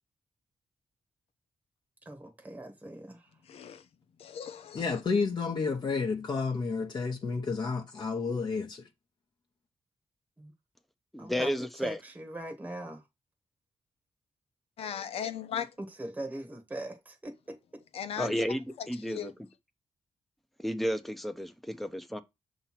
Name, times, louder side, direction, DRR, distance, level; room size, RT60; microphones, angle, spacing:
voice 1, 2.0-3.3 10.4-10.5 11.2-13.0 15.8-17.8, right 1 dB, 15° right, 1.1 m, -41 dB
voice 2, 3.5-3.8 4.2-4.8 14.8-15.7 17.9-18.4 18.8-19.3, left 9 dB, 85° left, 0.8 m, -37 dB
voice 3, 4.7-8.9, left 4 dB, 45° left, 0.9 m, -31 dB
voice 4, 11.1-12.0 18.2-19.5 20.6-22.2, equal, ahead, 0.7 m, -32 dB
6.8 x 3.0 x 5.8 m
wide cardioid pair, 125°, 10 cm